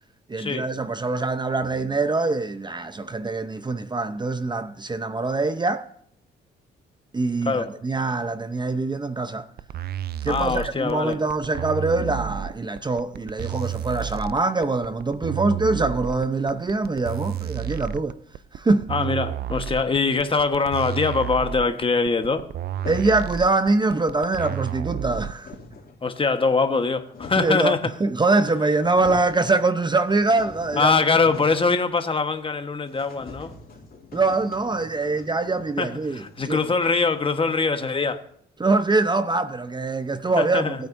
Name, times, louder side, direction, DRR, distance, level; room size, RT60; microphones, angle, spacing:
voice 1, 0.3-5.9 7.1-9.5 10.2-18.2 18.5-18.9 22.9-25.5 27.4-30.9 34.1-36.6 38.6-40.9, right 3 dB, 20° right, 0.7 m, -24 dB
sound 1, 9.6-25.6, right 10 dB, 55° right, 0.5 m, -31 dB
voice 2, 10.3-11.2 18.9-22.5 26.0-27.9 30.8-33.5 35.8-38.2 40.4-40.8, left 4 dB, 25° left, 1.3 m, -23 dB
sound 2, 22.8-23.3 24.0-24.1 24.2-24.8 25.1-26.0 26.7-27.6 28.4-28.5 28.8-29.4 29.8-31.7 32.0-32.1 32.4-32.5 32.9-37.4, left 3 dB, 50° left, 2.8 m, -43 dB
19.0 x 8.9 x 2.6 m
cardioid pair, 90°, 20 cm